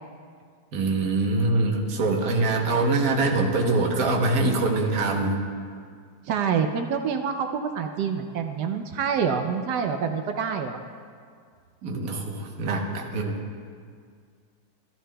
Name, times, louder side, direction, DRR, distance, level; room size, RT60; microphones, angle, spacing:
voice 1, 0.7-5.4 11.8-13.4, right 2 dB, 55° right, 1 dB, 1.4 m, -24 dB
voice 2, 6.3-10.8, right 6 dB, 70° right, 6 dB, 1.1 m, -27 dB
13.5 x 13.0 x 2.2 m, 2.1 s
omnidirectional pair, 2.1 m